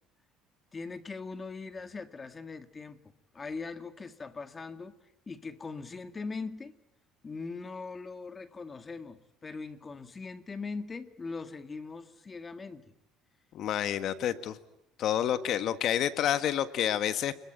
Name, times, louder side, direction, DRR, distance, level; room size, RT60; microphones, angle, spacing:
voice 1, 0.7-3.0 3.3-5.0 5.3-6.7 7.2-12.9, left 4 dB, 20° left, 10 dB, 1.8 m, -40 dB
voice 2, 13.5-14.6 15.0-17.3, left 10 dB, 55° left, 12 dB, 1.6 m, -29 dB
27.5 x 21.5 x 9.0 m, 0.83 s
cardioid pair, 140°, 0 cm